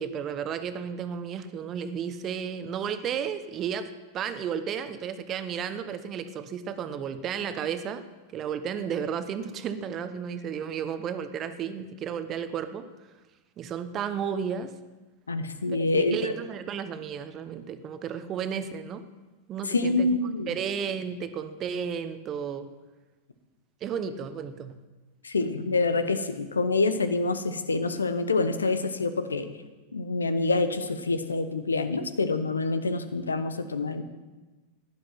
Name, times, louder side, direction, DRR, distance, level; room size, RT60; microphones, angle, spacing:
voice 1, 0.0-8.0 8.3-12.9 13.6-14.7 15.7-19.0 19.5-20.1 20.5-22.7 23.8-24.8, right 7 dB, 30° right, 11 dB, 1.0 m, -33 dB
voice 2, 15.3-16.3 19.6-20.5 25.2-29.5 29.9-34.0, left 3 dB, 75° left, 11 dB, 1.1 m, -26 dB
15.5 x 11.0 x 5.9 m, 1.2 s
figure-of-eight pair, 90°, 0 cm